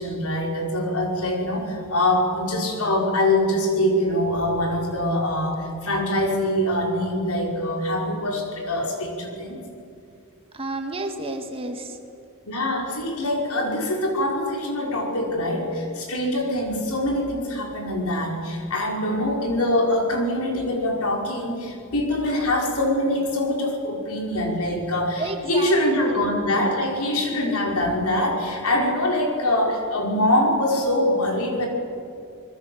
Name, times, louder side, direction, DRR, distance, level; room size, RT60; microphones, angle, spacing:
voice 1, 0.0-9.6 12.5-31.7, left 1 dB, 80° left, 0 dB, 5.6 m, -24 dB
voice 2, 10.5-12.0 25.2-25.8, right 2 dB, 25° right, 5 dB, 2.1 m, -30 dB
26.5 x 21.5 x 8.0 m, 2.4 s
head